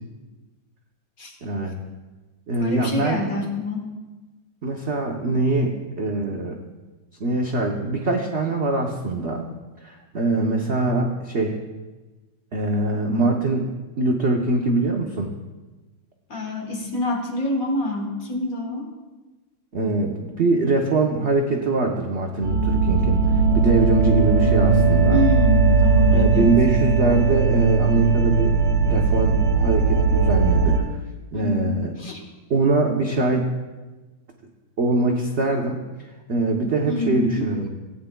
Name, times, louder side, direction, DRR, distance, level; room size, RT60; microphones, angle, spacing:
voice 1, 1.4-1.8 2.5-3.3 4.6-6.6 7.2-9.5 9.8-11.6 12.5-13.7 14.0-15.3 19.7-25.3 26.1-28.6 28.9-31.0 31.3-31.9 32.5-33.5 34.8-37.7, right 2 dB, 75° right, 1 dB, 0.6 m, -23 dB
voice 2, 2.6-3.9 16.3-18.9 25.1-26.5 31.3-32.2 36.9-37.4, left 2 dB, 45° left, 1 dB, 1.6 m, -27 dB
sound 1, 22.4-30.8, right 4 dB, 50° right, 2.1 m, -18 dB
17.0 x 9.3 x 2.2 m, 1.2 s
omnidirectional pair, 2.4 m